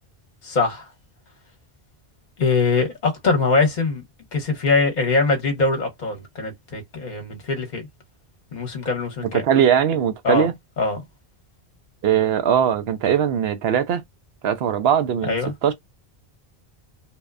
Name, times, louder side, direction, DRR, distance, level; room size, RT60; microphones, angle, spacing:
voice 1, 0.4-0.8 2.4-4.0 4.3-7.8 8.5-9.4 10.2-10.5 10.8-11.0 15.2-15.5, left 4 dB, 45° left, 1.0 m, -22 dB
voice 2, 9.2-10.5 12.0-14.0 14.4-15.7, right 9 dB, 75° right, 0.8 m, -20 dB
2.7 x 2.1 x 2.4 m
omnidirectional pair, 1.1 m